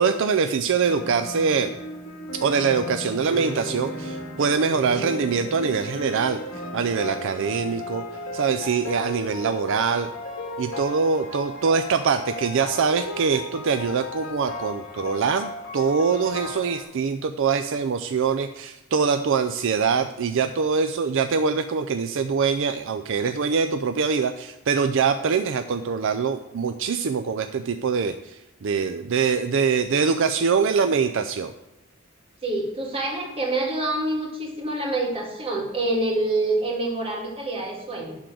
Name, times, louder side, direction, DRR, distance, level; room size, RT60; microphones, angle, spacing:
voice 1, 0.0-1.8 2.4-8.0 8.3-10.1 10.6-31.5, right 5 dB, 65° right, 8 dB, 0.4 m, -23 dB
sound 1, 0.8-16.8, left 1 dB, 75° left, 2.2 m, -35 dB
voice 2, 32.4-38.2, right 2 dB, 25° right, -1 dB, 2.1 m, -26 dB
11.5 x 3.8 x 7.5 m, 0.93 s
head